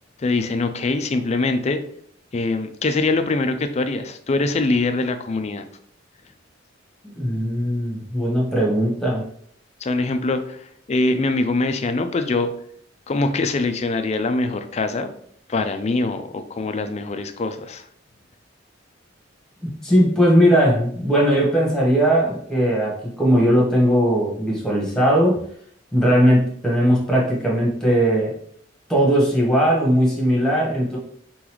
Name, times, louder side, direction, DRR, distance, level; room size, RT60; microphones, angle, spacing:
voice 1, 0.2-1.8 2.3-5.6 9.8-10.6 10.9-12.5 13.1-15.1 15.5-17.8, left 3 dB, 35° left, 7 dB, 0.4 m, -23 dB
voice 2, 7.1-9.3 19.6-25.4 25.9-28.3 28.9-31.0, equal, 5° left, -3 dB, 1.3 m, -19 dB
3.9 x 3.8 x 3.1 m, 0.63 s
head